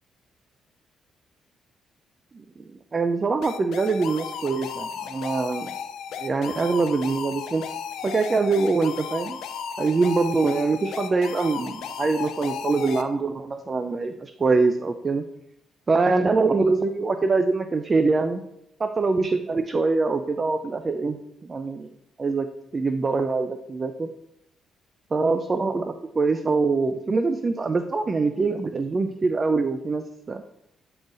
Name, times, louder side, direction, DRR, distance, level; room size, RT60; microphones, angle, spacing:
voice 1, 2.3-5.7 6.2-7.6 8.0-9.4 9.8-15.2 15.9-18.4 18.8-21.9 22.2-22.5 22.7-24.1 25.1-30.4, right 3 dB, 35° right, 8 dB, 0.4 m, -24 dB
sound 1, 3.4-13.0, left 7 dB, 80° left, 0.5 m, -34 dB
8.5 x 3.9 x 3.9 m, 0.81 s
cardioid pair, 90°, 0 cm